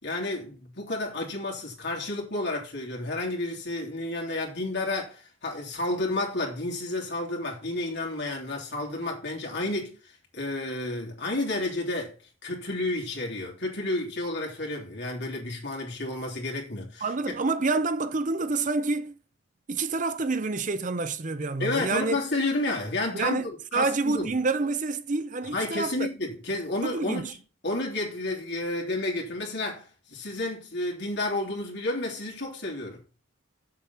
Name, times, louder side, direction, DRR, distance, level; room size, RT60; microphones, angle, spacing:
voice 1, 0.0-12.2 12.4-17.1 21.6-24.3 25.4-27.4 27.6-33.0, left 2 dB, 55° left, 3.3 m, -31 dB
voice 2, 17.0-19.2 19.7-22.2 23.1-26.1 26.8-27.3, right 3 dB, 40° right, 0.6 m, -28 dB
7.7 x 7.2 x 5.7 m
head